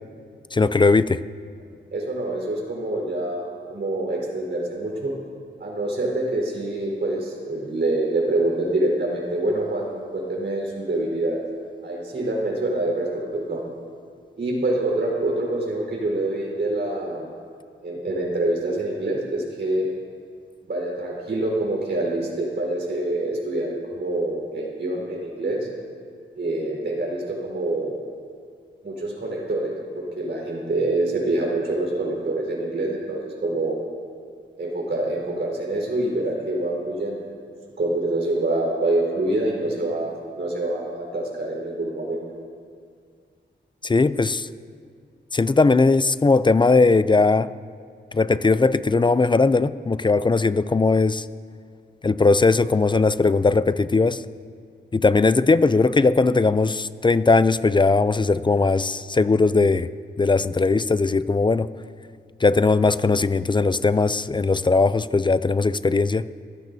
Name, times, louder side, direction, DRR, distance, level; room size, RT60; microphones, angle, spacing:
voice 1, 0.5-1.2 43.8-44.5 45.3-47.5 48.1-51.3 52.0-54.2 54.9-59.9 60.2-61.7 62.4-66.3, left 3 dB, 25° left, 14 dB, 0.4 m, -19 dB
voice 2, 1.9-5.1 5.6-11.4 11.8-13.6 14.4-17.3 17.8-19.9 20.6-25.7 26.3-27.9 28.8-33.8 34.6-37.2 37.8-42.2, right 2 dB, 65° right, -3 dB, 4.4 m, -26 dB
24.5 x 15.5 x 2.7 m, 2.1 s
wide cardioid pair, 95°, 20 cm